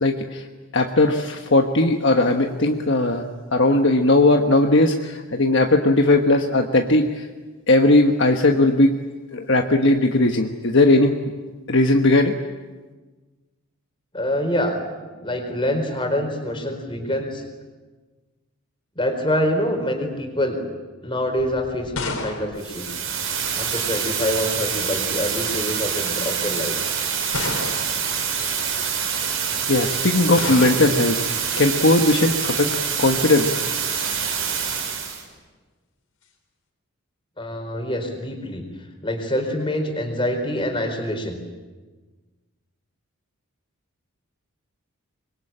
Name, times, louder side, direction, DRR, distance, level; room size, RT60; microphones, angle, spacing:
voice 1, 0.0-0.4 0.7-3.2 3.5-7.3 7.7-9.0 9.3-11.2 11.7-12.3 29.7-31.2 31.6-33.6, left 2 dB, 55° left, 4 dB, 1.3 m, -18 dB
voice 2, 14.1-17.4 19.0-20.6 21.0-22.9 23.6-26.8 37.4-38.6 39.0-41.4, left 1 dB, 25° left, 5 dB, 4.5 m, -25 dB
sound 1, 21.4-23.7 24.7-25.2 26.0-26.1 27.3-28.1 30.4-31.1, left 3 dB, 85° left, 4.8 m, -31 dB
sound 2, 22.6-35.2, right 7 dB, 75° right, 5.7 m, -26 dB
25.5 x 22.5 x 8.8 m, 1.3 s
head